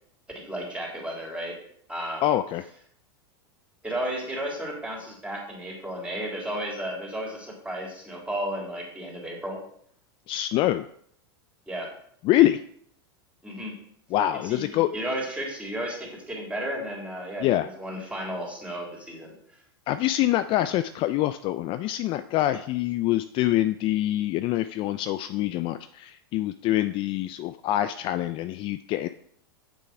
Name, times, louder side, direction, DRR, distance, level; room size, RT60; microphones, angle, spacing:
voice 1, 0.3-1.6 1.9-2.3 3.8-9.6 11.7-11.9 13.4-13.8 14.4-14.6 14.9-19.4, right 1 dB, 10° right, -2 dB, 3.5 m, -33 dB
voice 2, 2.2-2.6 10.3-10.9 12.2-12.6 14.1-14.9 17.4-17.7 19.9-29.1, left 14 dB, 40° left, 11 dB, 0.4 m, -25 dB
8.4 x 6.5 x 4.9 m, 0.67 s
hypercardioid pair, 110°, 13 cm